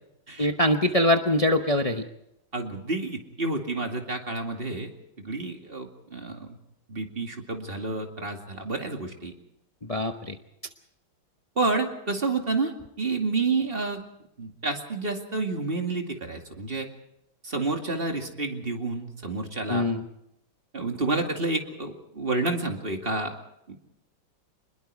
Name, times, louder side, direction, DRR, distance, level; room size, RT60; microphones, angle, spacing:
voice 1, 0.4-2.0 9.8-10.4 19.7-20.1, left 1 dB, 60° left, 5 dB, 0.3 m, -23 dB
voice 2, 2.5-4.9 5.2-6.6 6.9-9.3 11.6-12.7 13.0-14.0 14.4-16.9 17.4-19.8 20.7-23.3 23.7-23.9, right 3 dB, 25° right, 4 dB, 2.4 m, -29 dB
26.5 x 21.0 x 4.8 m, 0.80 s
omnidirectional pair, 2.3 m